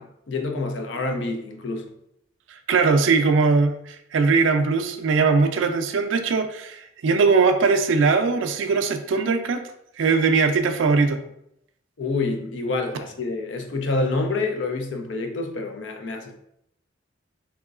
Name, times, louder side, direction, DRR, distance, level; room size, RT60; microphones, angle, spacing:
voice 1, 0.0-1.9 12.0-16.4, left 3 dB, 65° left, 5 dB, 0.5 m, -27 dB
voice 2, 2.7-9.6 10.0-11.2, right 4 dB, 75° right, 7 dB, 0.4 m, -20 dB
3.6 x 3.0 x 2.4 m, 0.76 s
head